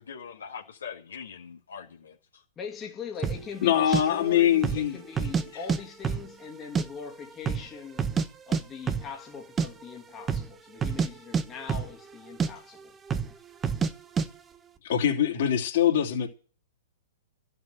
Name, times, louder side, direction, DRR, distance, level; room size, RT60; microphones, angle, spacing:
voice 1, 0.0-2.4, left 7 dB, 80° left, 1.9 m, -42 dB
voice 2, 2.6-8.1 8.5-13.0, left 6 dB, 25° left, 2.1 m, -41 dB
sound 1, 3.2-3.4 3.9-4.0 4.5-4.9 5.2-5.8 6.0-6.9 7.1-7.2 7.5-8.3 8.5-8.6 8.9-9.1 9.4-9.7 10.2-10.5 10.8-12.1 12.4-12.5 13.1-13.3 13.6-13.9 14.2-14.3, right 6 dB, 20° right, 1.0 m, -27 dB
voice 3, 3.6-5.0 14.8-16.3, left 10 dB, 60° left, 3.0 m, -23 dB
13.0 x 6.9 x 9.1 m
hypercardioid pair, 115°, 0 cm